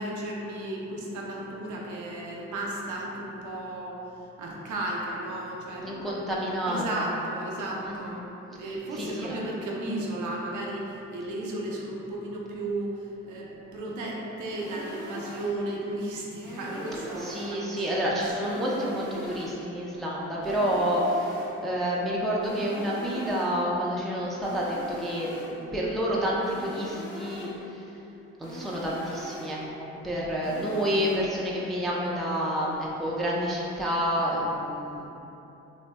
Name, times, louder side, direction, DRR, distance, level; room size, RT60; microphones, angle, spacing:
voice 1, 0.0-4.0 4.4-6.0 6.7-17.6 18.4-18.8, right 1 dB, 60° right, -3 dB, 0.6 m, -34 dB
voice 2, 5.7-7.1 7.9-8.2 8.6-9.4 17.2-27.8 28.4-35.1, equal, ahead, -5 dB, 0.4 m, -29 dB
sound 1, 14.6-15.7 16.4-17.7 18.4-19.7 20.4-21.7 22.4-23.7 24.4-25.7 26.4-27.7 28.4-29.7 30.4-31.2, left 1 dB, 85° left, 0.7 m, -42 dB
2.8 x 2.5 x 2.2 m, 3.0 s
hypercardioid pair, 55°, 34 cm